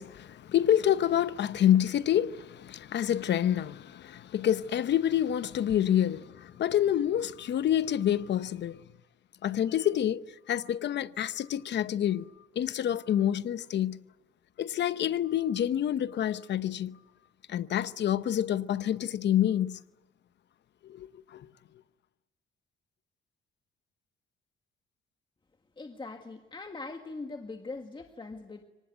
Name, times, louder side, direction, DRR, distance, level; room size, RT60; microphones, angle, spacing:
voice 1, 0.0-8.8 9.4-12.3 12.5-14.0 14.6-17.0 17.5-19.8 20.8-21.5, left 10 dB, 65° left, 0.9 m, -27 dB
voice 2, 25.8-28.6, left 3 dB, 25° left, 1.8 m, -41 dB
25.0 x 19.5 x 9.5 m
cardioid pair, 90°, 20 cm